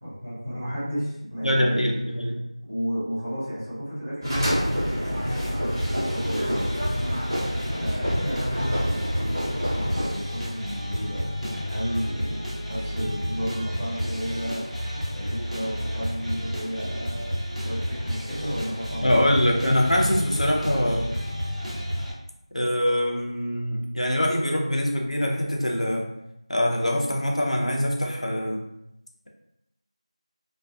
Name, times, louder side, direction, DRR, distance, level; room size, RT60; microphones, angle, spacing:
voice 1, 0.0-1.8 2.7-6.8 7.8-19.5, equal, 15° right, -11 dB, 0.6 m, -33 dB
voice 2, 1.4-2.4 19.0-21.1 22.5-26.1 26.5-28.6, equal, 75° left, 0 dB, 0.6 m, -24 dB
sound 1, 4.2-10.1, equal, 35° right, 0.9 m, -28 dB
sound 2, 5.8-22.1, equal, 90° right, 0.9 m, -31 dB
2.5 x 2.4 x 2.3 m, 0.85 s
figure-of-eight pair, 180°, 4 cm